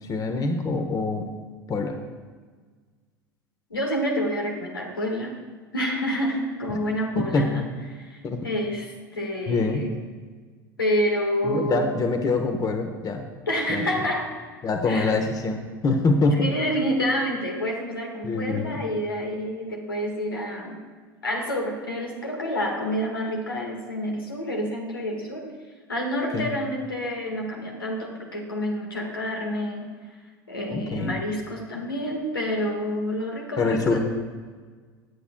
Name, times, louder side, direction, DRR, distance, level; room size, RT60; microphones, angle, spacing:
voice 1, 0.1-1.3 1.7-2.0 7.2-7.4 8.2-8.4 9.5-9.8 11.4-13.2 13.7-13.9 14.6-16.5 18.2-18.8 26.3-26.5 30.7-31.1 33.6-34.0, left 3 dB, 30° left, 5 dB, 1.1 m, -24 dB
voice 2, 3.7-5.4 5.7-7.7 8.0-9.9 10.8-11.9 13.5-14.4 14.8-15.1 16.4-20.8 21.2-25.5 25.9-30.2 30.5-34.0, equal, 90° left, 0 dB, 1.7 m, -28 dB
18.0 x 8.3 x 2.3 m, 1.5 s
hypercardioid pair, 75°, 11 cm